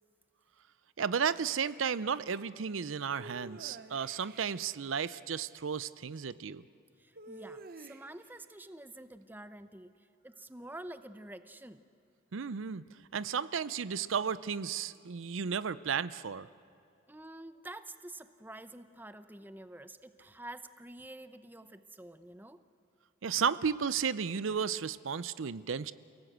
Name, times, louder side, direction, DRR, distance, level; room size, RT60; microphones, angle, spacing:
voice 1, 1.0-6.6 12.3-12.8 13.1-16.5 23.2-25.9, right 6 dB, 80° right, 16 dB, 0.6 m, -33 dB
sound 1, 3.2-4.6 7.2-8.3, right 2 dB, 50° right, 1.0 m, -49 dB
voice 2, 7.0-11.8 17.1-22.6, right 1 dB, 10° right, 11 dB, 0.6 m, -48 dB
29.0 x 18.0 x 8.0 m, 2.5 s
head